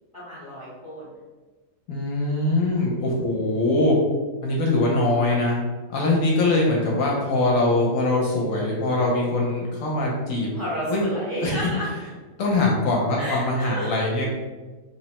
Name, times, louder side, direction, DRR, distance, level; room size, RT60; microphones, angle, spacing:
voice 1, 0.1-1.1 10.5-11.9 13.2-13.9, equal, 20° left, -9 dB, 0.6 m, -31 dB
voice 2, 1.9-3.9 4.4-5.6 5.9-10.5 10.9-11.0 11.4-11.7 12.4-14.3, left 2 dB, 75° left, -2 dB, 0.9 m, -22 dB
3.0 x 2.0 x 2.8 m, 1.3 s
omnidirectional pair, 1.5 m